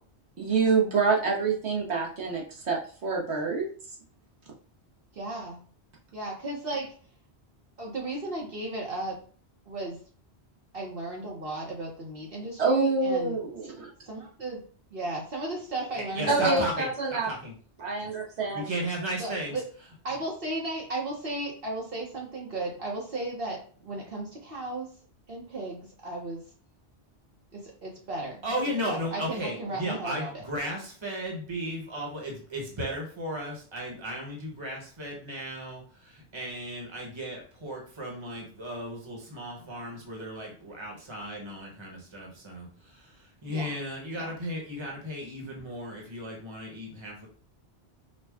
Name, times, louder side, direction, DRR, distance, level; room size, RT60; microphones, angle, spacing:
voice 1, 0.4-3.7 12.6-13.9 16.3-17.3 17.8-18.7, right 4 dB, 75° right, -2 dB, 1.4 m, -26 dB
voice 2, 5.1-5.6 6.1-6.9 7.8-9.2 9.7-10.0 10.7-13.4 14.1-14.6 14.9-16.7 19.2-19.6 20.0-24.9 25.3-26.4 27.5-28.5 28.8-30.3 43.5-43.8 44.1-44.3, right 2 dB, 55° right, -3 dB, 1.2 m, -35 dB
voice 3, 15.9-17.5 18.0-18.1 18.5-19.5 28.4-47.3, equal, 25° right, -1 dB, 1.2 m, -35 dB
5.1 x 2.3 x 3.5 m, 0.42 s
omnidirectional pair, 1.1 m